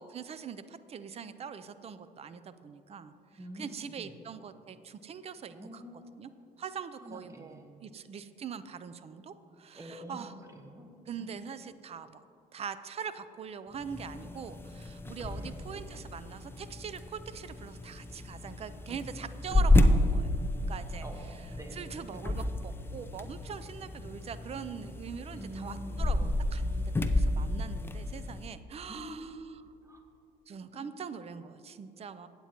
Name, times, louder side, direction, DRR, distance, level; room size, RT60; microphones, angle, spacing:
voice 1, 0.0-3.1 3.6-5.8 6.2-6.3 6.6-10.3 11.1-12.2 12.5-20.3 20.7-21.0 21.7-29.4 30.5-32.3, right 7 dB, 35° right, 13 dB, 0.5 m, -42 dB
voice 2, 3.3-4.1 5.5-6.3 7.0-7.7 9.7-10.9 11.2-11.3 15.1-15.8 18.9-19.3 21.0-22.4 25.4-26.1 27.1-27.4 28.9-29.6 29.8-30.0 30.8-30.9, right 1 dB, 20° right, 3 dB, 1.2 m, -47 dB
sound 1, 13.7-28.5, left 1 dB, 15° left, 0.5 m, -31 dB
15.5 x 8.8 x 3.0 m, 2.7 s
cardioid pair, 110°, 17 cm